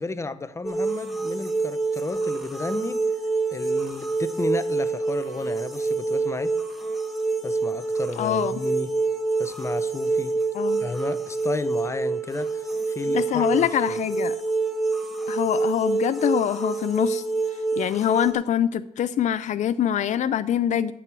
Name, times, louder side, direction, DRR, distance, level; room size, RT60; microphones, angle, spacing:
voice 1, 0.0-3.0 3.5-6.6 7.4-8.9 9.4-10.3 10.8-14.0, left 3 dB, 20° left, 12 dB, 0.6 m, -33 dB
sound 1, 0.6-18.3, right 3 dB, ahead, 1.4 m, -27 dB
voice 2, 8.2-8.5 10.5-10.8 13.1-14.4 15.3-17.2 17.5-20.9, left 10 dB, 70° left, 12 dB, 0.4 m, -24 dB
8.9 x 6.2 x 8.1 m, 0.79 s
cardioid pair, 115°, 13 cm